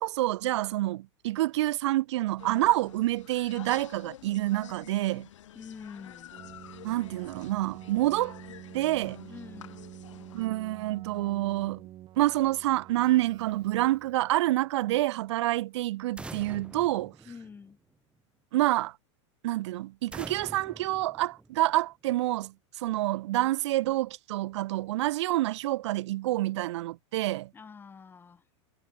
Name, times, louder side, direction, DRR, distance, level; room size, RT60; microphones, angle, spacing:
voice 1, 0.0-5.3 6.8-8.4 8.7-9.2 10.3-11.8 12.2-17.1 18.5-18.9 19.4-22.5 22.8-27.5, right 16 dB, 70° right, 0.6 m, -27 dB
sound 1, 2.4-10.5, left 12 dB, 80° left, 4.6 m, -49 dB
voice 2, 5.5-6.3 9.3-9.9 17.3-17.8 27.5-28.4, left 5 dB, 15° left, 3.5 m, -46 dB
Keyboard (musical), 6.3-14.4, right 13 dB, 30° right, 2.4 m, -48 dB
sound 2, 16.2-18.0 20.1-21.9, right 3 dB, 5° right, 2.4 m, -45 dB
supercardioid pair, 145°, 16 cm